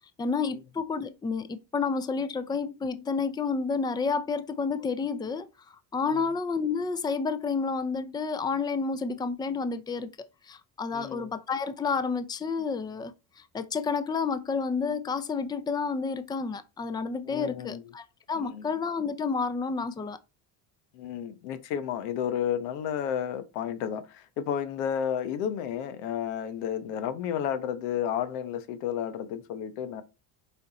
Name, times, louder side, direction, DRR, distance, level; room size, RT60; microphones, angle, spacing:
voice 1, 0.2-20.2, left 5 dB, 10° left, 0.5 m, -30 dB
voice 2, 10.9-11.3 17.3-17.8 18.3-18.6 20.9-30.0, left 9 dB, 90° left, 1.1 m, -32 dB
6.9 x 4.5 x 4.0 m
supercardioid pair, 100°, 49 cm